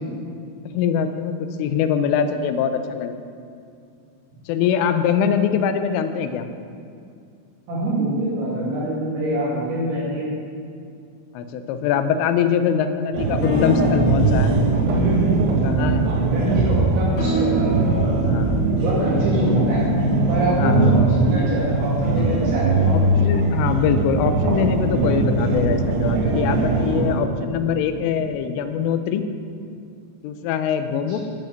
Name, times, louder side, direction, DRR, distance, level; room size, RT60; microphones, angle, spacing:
voice 1, 0.7-3.2 4.5-6.4 11.3-14.5 15.6-16.1 18.2-18.6 20.6-21.0 22.9-29.2 30.2-31.2, left 7 dB, 90° left, 9 dB, 3.3 m, -23 dB
voice 2, 7.7-10.3 16.1-18.3 18.8-19.8 20.3-23.2 30.9-31.2, right 1 dB, 70° right, -7 dB, 4.7 m, -25 dB
sound 1, 13.1-27.2, right 3 dB, 85° right, 5.0 m, -20 dB
sound 2, 13.4-20.5 22.2-22.3, left 1 dB, 70° left, 4.7 m, -29 dB
11.5 x 7.4 x 9.3 m, 2.4 s
omnidirectional pair, 5.7 m